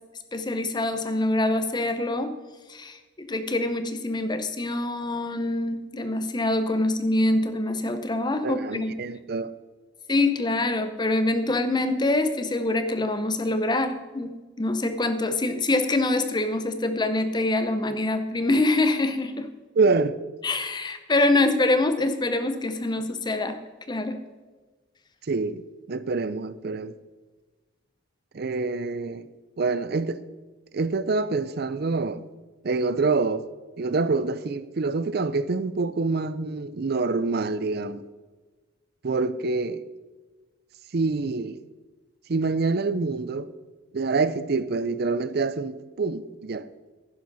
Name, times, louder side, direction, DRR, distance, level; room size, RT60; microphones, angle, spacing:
voice 1, 0.3-2.3 2.7-8.9 10.1-14.3 14.6-19.5 20.4-23.6 23.9-24.2, left 2 dB, 25° left, 0.8 m, -25 dB
voice 2, 8.4-9.5 19.8-20.2 25.3-25.6 25.9-27.0 28.3-29.3 29.6-30.2 30.7-32.3 32.6-33.5 33.8-38.1 39.0-39.8 40.9-41.6 42.3-43.5 43.9-46.7, right 3 dB, 55° right, 0.5 m, -26 dB
10.5 x 10.5 x 4.1 m
head